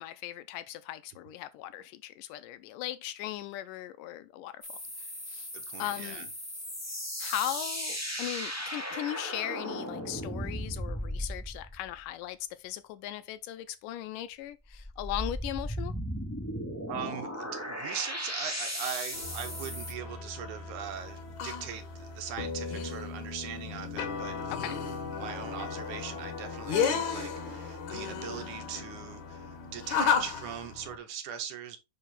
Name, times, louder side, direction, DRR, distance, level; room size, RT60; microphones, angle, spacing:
voice 1, 0.0-4.6 5.0-5.5 5.8-6.3 7.2-15.9 24.5-24.8, left 13 dB, 80° left, 2.1 m, -38 dB
sound 1, 4.6-12.0 14.7-19.9, equal, 10° left, 0.8 m, -37 dB
voice 2, 5.5-6.3 6.5-6.6 16.9-31.8, right 9 dB, 75° right, 2.0 m, -41 dB
sound 2, 19.1-31.0, left 6 dB, 65° left, 2.5 m, -34 dB
5.7 x 5.5 x 3.7 m
omnidirectional pair, 3.9 m